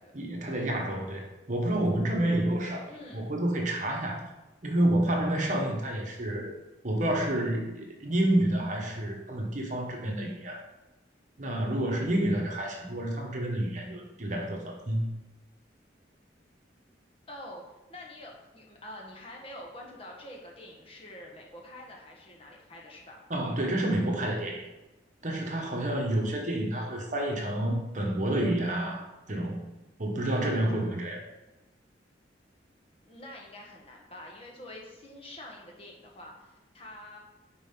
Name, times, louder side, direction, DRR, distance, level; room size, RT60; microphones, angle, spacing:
voice 1, 0.1-2.8 3.1-4.2 4.6-6.5 6.8-10.6 11.4-15.1 23.3-24.6 25.2-29.6 30.0-31.2, right 1 dB, 40° right, 1 dB, 1.2 m, -29 dB
voice 2, 2.9-3.4 17.3-17.6 17.9-23.2 26.7-27.1 33.0-37.2, left 1 dB, 30° left, -1 dB, 1.3 m, -46 dB
9.8 x 4.2 x 3.8 m, 1.0 s
head